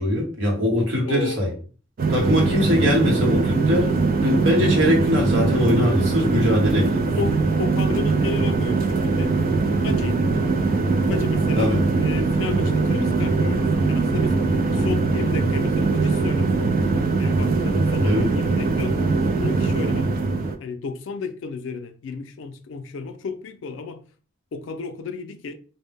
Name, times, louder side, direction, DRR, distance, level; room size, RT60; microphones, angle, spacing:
voice 1, 0.0-1.5 2.1-3.9 4.2-7.0 11.6-11.8 18.0-18.3, left 1 dB, 80° right, 1.0 m, -21 dB
voice 2, 1.0-1.6 7.1-9.4 9.8-10.3 11.1-14.4 14.7-16.6 17.2-19.0 19.4-20.1 20.6-24.0 24.5-25.5, left 5 dB, 85° left, 0.4 m, -33 dB
sound 1, 2.0-20.5, right 3 dB, 50° right, 0.3 m, -21 dB
2.1 x 2.0 x 3.3 m
head